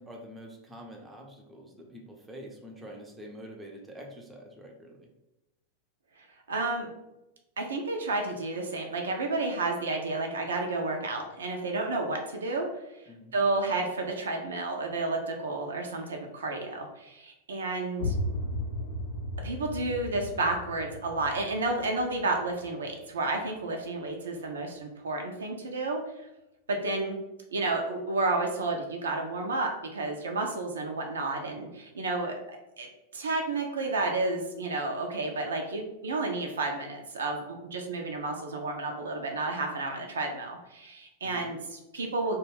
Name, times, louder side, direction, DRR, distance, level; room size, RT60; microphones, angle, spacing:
voice 1, 0.0-5.1 13.1-13.4 41.2-41.5, equal, 10° right, 1 dB, 0.5 m, -46 dB
voice 2, 6.5-6.9 7.6-12.7 13.3-18.1 19.4-26.0 26.7-27.2 27.5-32.9 33.1-42.4, right 2 dB, 65° right, 2 dB, 0.4 m, -31 dB
sound 1, 18.0-23.6, left 1 dB, 65° left, 0.3 m, -36 dB
2.3 x 2.2 x 3.2 m, 0.93 s
figure-of-eight pair, 90°, 0 cm